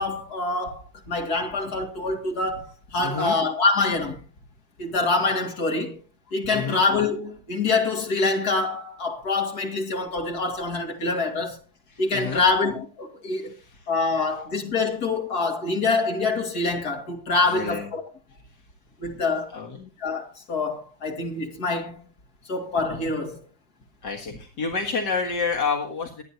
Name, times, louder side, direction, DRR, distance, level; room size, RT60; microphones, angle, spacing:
voice 1, 0.0-4.2 4.8-6.0 6.3-11.6 12.0-13.5 13.9-18.0 19.0-19.5 20.0-22.0 22.5-23.4, left 3 dB, 65° left, 3.0 m, -25 dB
voice 2, 3.0-3.3 6.5-6.8 11.9-12.4 13.3-13.9 17.4-17.9 19.5-19.9 24.0-26.2, left 4 dB, 80° left, 2.4 m, -29 dB
23.5 x 9.3 x 2.8 m
omnidirectional pair, 1.8 m